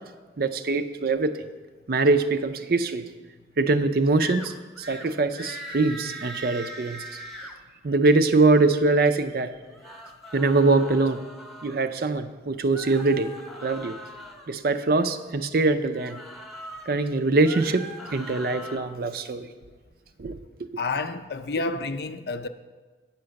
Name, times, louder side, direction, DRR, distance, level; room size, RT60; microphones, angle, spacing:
voice 1, 0.4-1.5 1.9-3.0 3.6-7.0 7.8-9.5 10.3-11.2 11.6-13.3 13.6-14.0 14.5-16.2 16.9-17.9 18.1-19.5 20.2-20.4, right 3 dB, 55° right, 0.5 m, -23 dB
sound 1, 4.2-4.5 4.8-5.1 5.3-7.5 9.6-11.8 12.7-14.5 15.9-16.9 17.3-18.8, equal, ahead, 0.7 m, -40 dB
voice 2, 20.8-22.5, left 3 dB, 60° left, 0.5 m, -30 dB
8.8 x 5.8 x 6.4 m
head